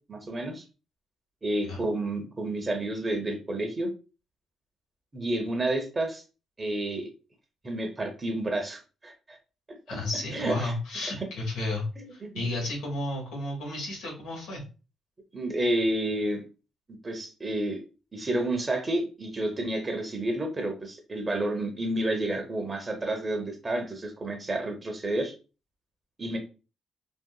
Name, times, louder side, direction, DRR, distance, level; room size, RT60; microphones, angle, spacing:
voice 1, 0.1-0.6 1.4-3.9 5.1-6.2 6.6-7.1 7.6-9.4 10.3-10.7 12.0-12.3 15.3-16.4 17.0-17.8 18.1-25.3 26.2-26.4, right 1 dB, 25° right, 3 dB, 0.7 m, -30 dB
voice 2, 9.9-14.6, left 2 dB, 90° left, -1 dB, 1.4 m, -33 dB
3.7 x 2.4 x 2.3 m, 0.33 s
cardioid pair, 90°, 0 cm